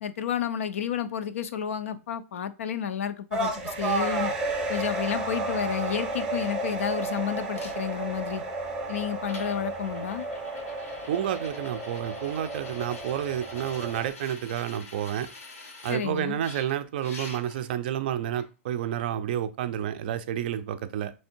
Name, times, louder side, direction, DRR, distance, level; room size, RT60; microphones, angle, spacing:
voice 1, 0.0-4.3 4.7-8.4 8.9-10.3 15.9-16.4, left 8 dB, 70° left, 0.5 m, -31 dB
sound 1, 3.3-14.1, right 2 dB, 10° right, 0.7 m, -32 dB
sound 2, 7.5-7.7 8.7-8.8 9.3-16.0 16.4-17.7 18.4-18.5, left 3 dB, 90° left, 1.4 m, -45 dB
voice 2, 11.1-15.3 15.8-21.1, right 10 dB, 40° right, 0.4 m, -30 dB
3.5 x 3.2 x 4.4 m
hypercardioid pair, 170°, 8 cm